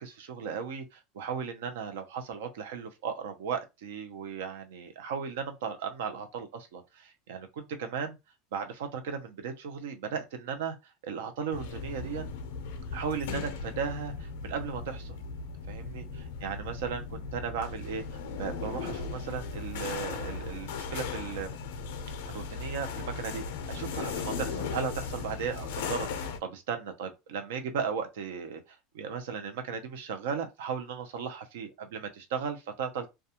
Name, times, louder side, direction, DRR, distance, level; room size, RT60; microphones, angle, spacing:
voice 1, 0.0-7.5 7.8-8.2 8.5-12.3 12.9-15.2 15.7-18.0 18.4-21.6 22.3-28.6 28.9-33.1, right 6 dB, 85° right, 0.6 m, -36 dB
sound 1, 11.5-26.4, left 5 dB, 80° left, 0.4 m, -37 dB
2.3 x 2.2 x 2.8 m
supercardioid pair, 130°, 0 cm